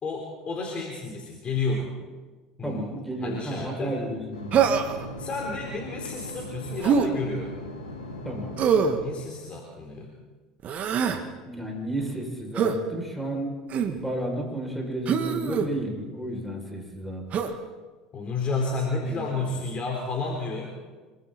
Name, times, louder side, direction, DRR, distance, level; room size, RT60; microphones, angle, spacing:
voice 1, 0.0-2.0 2.6-2.9 3.2-4.0 5.2-7.5 9.0-10.1 18.1-20.7, left 3 dB, 35° left, 0 dB, 4.1 m, -31 dB
voice 2, 2.6-4.7 8.3-8.6 11.4-13.5 13.9-17.2 19.0-19.2, right 1 dB, ahead, 0 dB, 7.0 m, -32 dB
sound 1, 4.3-9.5, left 1 dB, 85° left, 2.7 m, -39 dB
Human voice, 4.5-5.1 6.8-7.1 8.6-9.0 10.6-11.2 12.6-12.8 13.7-14.0 15.1-15.7 17.3-17.6, right 6 dB, 45° right, 1.9 m, -23 dB
26.5 x 23.5 x 4.4 m, 1.3 s
figure-of-eight pair, 70°, 3 cm